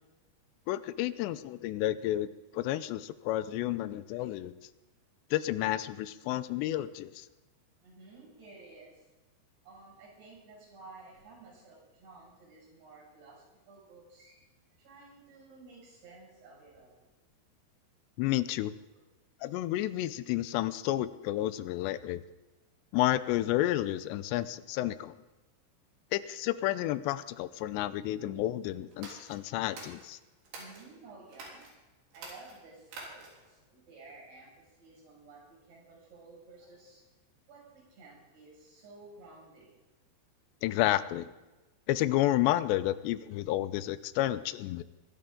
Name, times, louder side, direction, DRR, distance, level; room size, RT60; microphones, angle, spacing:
voice 1, 0.7-4.5 5.3-7.3 18.2-18.7 19.4-22.2 22.9-25.2 26.1-30.2 40.6-41.3 41.9-44.8, left 14 dB, 90° left, 14 dB, 2.8 m, -31 dB
voice 2, 7.8-8.9 9.6-14.4 14.8-17.0 18.9-19.0 30.5-31.6 32.1-34.5 34.8-37.0 37.5-39.7, right 3 dB, 70° right, -4 dB, 8.3 m, -53 dB
sound 1, 28.9-30.9 31.3-31.7 32.1-33.5, right 3 dB, 85° right, 5.7 m, -47 dB
23.0 x 12.5 x 3.7 m, 1.1 s
omnidirectional pair, 4.9 m